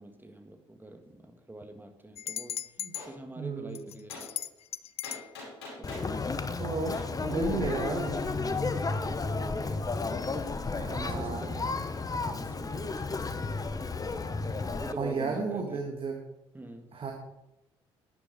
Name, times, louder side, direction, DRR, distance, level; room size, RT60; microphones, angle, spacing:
voice 1, 0.0-4.3 5.8-6.3 7.1-10.2 10.8-13.7 14.6-15.9 16.5-17.0, right 1 dB, 15° right, 6 dB, 1.7 m, -44 dB
sound 1, 2.2-3.1 3.7-5.3, left 10 dB, 45° left, 0.5 m, -37 dB
Gunshot gunfire, 2.9-3.1 4.1-4.3 5.0-6.1 6.9-7.1, left 2 dB, 80° left, 5.2 m, -43 dB
voice 2, 3.4-3.9 5.9-6.2 6.6-8.2 10.7-11.6 14.6-14.7 15.0-16.2 16.9-17.1, right 4 dB, 40° right, 3 dB, 1.8 m, -34 dB
Conversation, 5.8-14.9, left 4 dB, 25° left, 1.1 m, -32 dB
12.0 x 10.5 x 5.1 m, 0.93 s
figure-of-eight pair, 50°, 14 cm